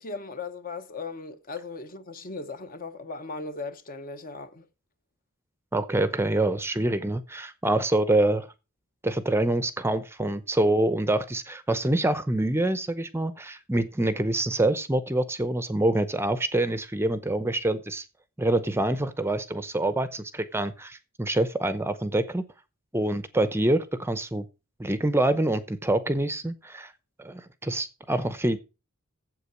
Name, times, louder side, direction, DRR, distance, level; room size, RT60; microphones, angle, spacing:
voice 1, 0.0-4.7, left 3 dB, 40° left, 1.0 m, -37 dB
voice 2, 5.7-8.5 9.0-18.0 18.4-22.4 22.9-24.4 24.8-26.9 27.2-28.6, right 1 dB, 10° right, 0.7 m, -26 dB
8.4 x 7.7 x 6.1 m
head